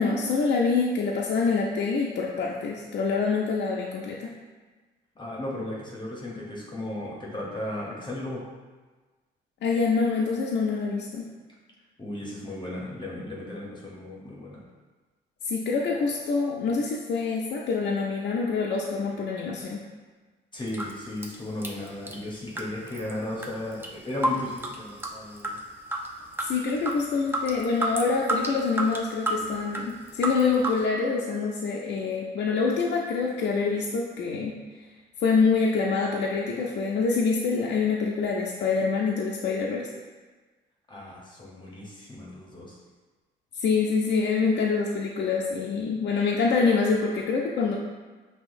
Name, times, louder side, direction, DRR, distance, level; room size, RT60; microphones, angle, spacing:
voice 1, 0.0-4.3 9.6-11.3 15.5-19.8 26.4-34.5 35.2-39.9 43.6-47.8, left 4 dB, 65° left, -2 dB, 0.5 m, -26 dB
voice 2, 5.2-8.5 12.0-14.6 20.5-25.6 40.9-42.8, left 1 dB, 25° left, -4 dB, 0.8 m, -35 dB
sound 1, 20.7-20.9 21.2-22.2 22.6-23.1 23.4-23.9 24.2-25.6 25.9-26.1 26.3-30.8, right 1 dB, 10° right, 0.5 m, -30 dB
5.6 x 2.8 x 2.5 m, 1.3 s
cardioid pair, 90°, 20 cm